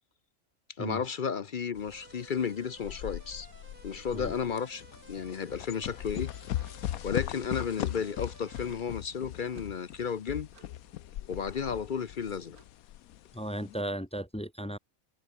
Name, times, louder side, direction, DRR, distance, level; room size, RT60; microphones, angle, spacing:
voice 1, 0.8-3.5 3.8-6.3 7.0-10.5 11.3-12.6, left 6 dB, 50° left, 0.7 m, -33 dB
sound 1, 1.7-13.8, left 13 dB, 80° left, 1.1 m, -39 dB
sound 2, 1.9-8.8, right 4 dB, 40° right, 1.7 m, -56 dB
sound 3, 6.5-12.7, right 3 dB, 90° right, 4.2 m, -63 dB
voice 2, 13.3-14.8, right 1 dB, 5° left, 0.7 m, -35 dB
omnidirectional pair, 1.5 m